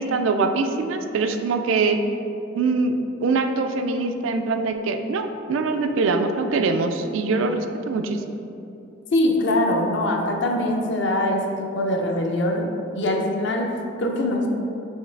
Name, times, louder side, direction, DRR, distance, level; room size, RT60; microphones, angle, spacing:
voice 1, 0.0-2.0 2.5-2.9 3.2-8.2, right 3 dB, 80° right, 7 dB, 0.3 m, -23 dB
voice 2, 9.1-14.5, left 1 dB, 65° left, 2 dB, 0.5 m, -23 dB
4.6 x 3.1 x 3.3 m, 2.8 s
head